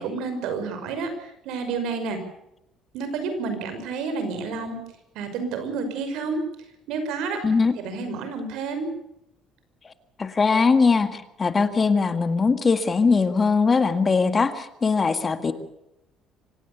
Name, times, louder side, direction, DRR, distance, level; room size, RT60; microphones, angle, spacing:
voice 1, 0.0-2.2 2.9-4.8 5.1-6.4 6.9-7.4 7.8-8.9, right 4 dB, 80° right, 8 dB, 5.7 m, -30 dB
voice 2, 7.4-7.7 9.9-10.0 10.2-15.5, left 4 dB, 25° left, 10 dB, 1.7 m, -21 dB
25.5 x 17.0 x 7.0 m, 0.83 s
cardioid pair, 120°, 0 cm